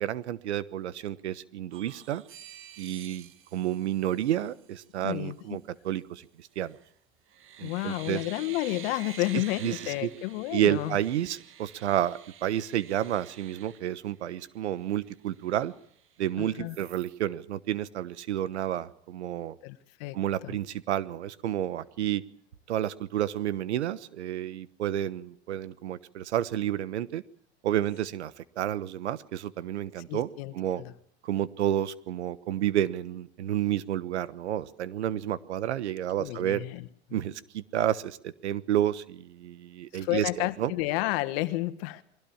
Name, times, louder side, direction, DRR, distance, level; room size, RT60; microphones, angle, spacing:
voice 1, 0.0-2.2 2.8-6.8 7.6-8.2 9.6-10.1 10.5-15.7 16.2-19.6 20.1-22.2 22.7-27.2 27.6-30.3 30.5-30.8 31.2-36.6 37.1-40.7, right 11 dB, 85° right, 17 dB, 1.2 m, -30 dB
sound 1, 1.7-4.7 6.5-6.9 7.3-14.5 15.0-15.1 15.4-16.2 16.7-17.2, right 10 dB, 40° right, 1.8 m, -49 dB
voice 2, 5.0-5.6 7.6-11.0 16.4-16.8 19.6-20.6 30.1-30.9 36.2-37.2 39.9-42.0, left 18 dB, 60° left, 12 dB, 1.7 m, -31 dB
22.5 x 17.0 x 7.3 m, 0.66 s
hypercardioid pair, 110°, 33 cm